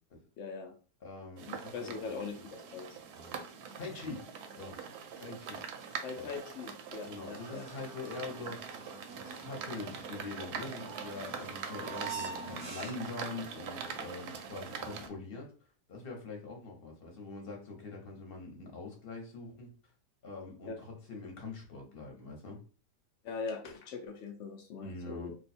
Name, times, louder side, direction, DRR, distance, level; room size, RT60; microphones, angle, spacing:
voice 1, 0.4-0.7 1.5-2.9 6.0-7.6 20.6-20.7 23.2-25.4, left 5 dB, 80° left, 3 dB, 0.6 m, -41 dB
voice 2, 1.0-2.5 3.1-3.3 3.8-4.3 4.6-4.8 5.2-5.6 6.2-6.3 7.0-8.7 9.2-15.5 15.9-19.7 20.2-22.6 24.8-25.3, left 3 dB, 40° left, 1 dB, 0.9 m, -44 dB
sound 1, 1.4-15.1, right 6 dB, 75° right, 1.0 m, -43 dB
sound 2, 7.4-13.3, right 5 dB, 35° right, 0.8 m, -46 dB
2.7 x 2.3 x 4.1 m, 0.37 s
omnidirectional pair, 1.8 m